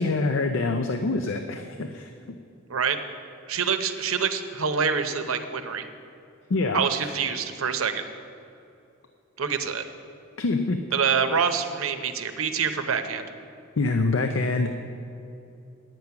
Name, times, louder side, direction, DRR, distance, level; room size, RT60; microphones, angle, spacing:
voice 1, 0.0-2.4 6.5-7.1 10.4-10.8 13.8-14.7, left 3 dB, 65° left, 6 dB, 0.5 m, -26 dB
voice 2, 3.5-5.9 6.7-8.0 9.4-9.8 10.9-13.3, right 6 dB, 90° right, 8 dB, 0.7 m, -26 dB
9.5 x 9.0 x 5.9 m, 2.7 s
head